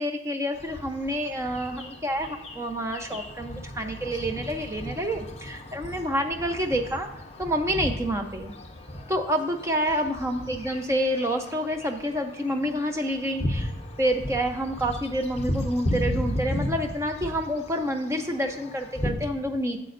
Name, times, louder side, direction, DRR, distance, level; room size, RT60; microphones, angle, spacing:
voice 1, 0.0-7.1 7.4-8.5 9.1-13.7 14.0-19.8, equal, 15° right, 5 dB, 0.8 m, -28 dB
sound 1, 0.5-19.1, left 1 dB, 35° left, 0.9 m, -35 dB
11.0 x 7.5 x 2.6 m, 0.88 s
head